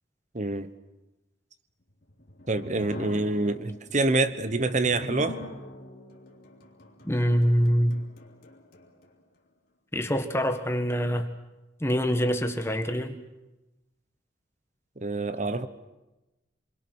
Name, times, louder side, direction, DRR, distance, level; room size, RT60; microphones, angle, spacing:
voice 1, 0.3-0.7 2.5-5.4 15.0-15.7, right 2 dB, 40° right, 12 dB, 1.0 m, -26 dB
sound 1, 1.9-9.1, left 1 dB, 55° left, 3.2 m, -42 dB
voice 2, 7.0-8.0 9.9-11.3 11.8-13.2, equal, 15° left, 6 dB, 1.6 m, -25 dB
28.0 x 22.0 x 6.3 m, 1.0 s
head